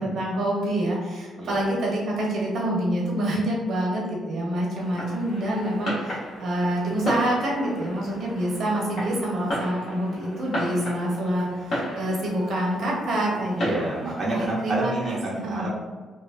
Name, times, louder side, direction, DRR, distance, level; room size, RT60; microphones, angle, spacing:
voice 1, 0.0-13.9 14.3-15.7, right 1 dB, 65° right, -3 dB, 0.9 m, -27 dB
voice 2, 1.3-1.7 13.6-15.7, right 2 dB, 35° right, -6 dB, 0.6 m, -28 dB
Fireworks, 4.8-14.8, equal, 60° left, 1.1 m, -34 dB
2.9 x 2.1 x 2.4 m, 1.4 s
cardioid pair, 90°, 0 cm